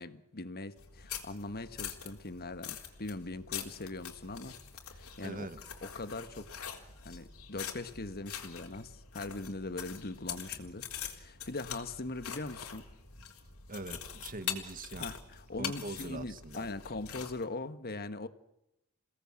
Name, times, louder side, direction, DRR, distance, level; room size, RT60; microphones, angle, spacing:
voice 1, 0.0-4.6 4.8-5.5 5.8-6.5 7.0-12.8 15.0-18.3, left 2 dB, 45° left, 11 dB, 1.5 m, -41 dB
sound 1, 0.8-17.4, left 8 dB, 70° left, 3.8 m, -44 dB
voice 2, 5.2-5.6 10.3-10.7 13.7-15.1 15.6-16.7, right 2 dB, 40° right, 12 dB, 1.6 m, -43 dB
29.0 x 18.0 x 7.7 m, 0.86 s
head